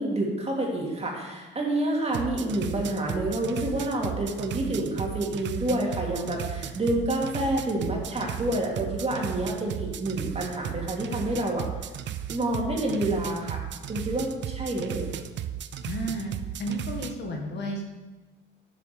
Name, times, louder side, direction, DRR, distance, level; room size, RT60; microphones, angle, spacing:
voice 1, 0.0-11.6 12.3-13.6 13.9-15.1, right 1 dB, 30° right, -2 dB, 2.9 m, -28 dB
sound 1, 2.1-17.1, right 10 dB, 65° right, 0.6 m, -35 dB
voice 2, 15.9-16.3 16.6-17.8, right 1 dB, 60° left, 2 dB, 1.9 m, -32 dB
7.4 x 7.1 x 6.8 m, 1.2 s
cardioid pair, 90°, 20 cm